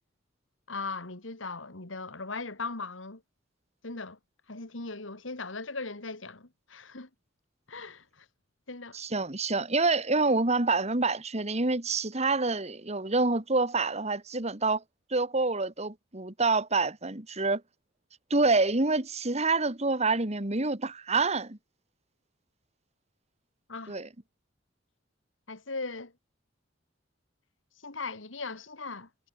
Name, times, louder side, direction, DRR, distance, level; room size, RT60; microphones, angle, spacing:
voice 1, 0.7-3.2 3.8-4.2 4.5-7.1 7.7-8.0 8.7-9.0 23.7-23.9 25.5-26.1 27.8-29.1, left 3 dB, 80° left, 2.5 m, -38 dB
voice 2, 8.9-14.8 15.1-17.6 18.3-21.6 23.9-24.1, right 3 dB, 35° right, 2.0 m, -27 dB
head